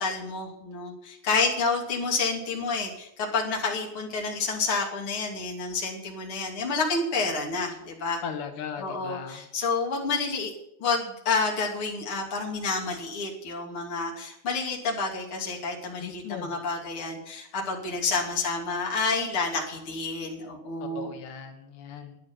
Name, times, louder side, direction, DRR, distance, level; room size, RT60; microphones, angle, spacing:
voice 1, 0.0-8.2 8.8-10.5 10.8-21.1, left 4 dB, 35° left, 0 dB, 3.2 m, -29 dB
voice 2, 8.2-9.4 16.0-16.5 20.9-22.2, left 7 dB, 85° left, 6 dB, 3.4 m, -38 dB
12.0 x 9.3 x 9.6 m, 0.81 s
omnidirectional pair, 4.4 m